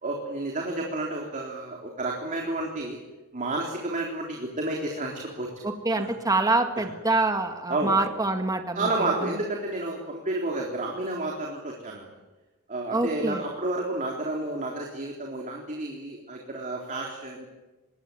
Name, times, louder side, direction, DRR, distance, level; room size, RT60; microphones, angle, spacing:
voice 1, 0.0-3.0 3.3-5.5 6.0-6.1 7.7-8.0 8.7-12.1 12.7-17.4, right 2 dB, 35° right, -1 dB, 3.7 m, -31 dB
voice 2, 5.6-8.9 9.2-9.4 12.9-13.5, right 2 dB, 15° right, 5 dB, 1.9 m, -25 dB
25.5 x 20.5 x 9.3 m, 1.2 s
head